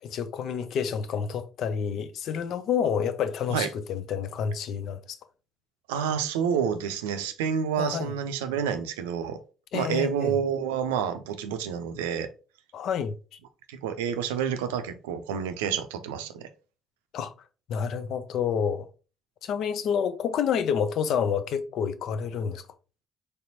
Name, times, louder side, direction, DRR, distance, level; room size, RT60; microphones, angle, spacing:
voice 1, 0.0-5.2 7.8-8.1 9.7-10.3 12.7-13.1 17.1-17.3 17.7-18.9 19.4-22.6, left 7 dB, 60° left, 0.5 m, -29 dB
voice 2, 5.9-9.4 9.7-12.3 13.7-16.5, right 7 dB, 80° right, 0.5 m, -29 dB
4.3 x 3.3 x 2.8 m
hypercardioid pair, 50°, 0 cm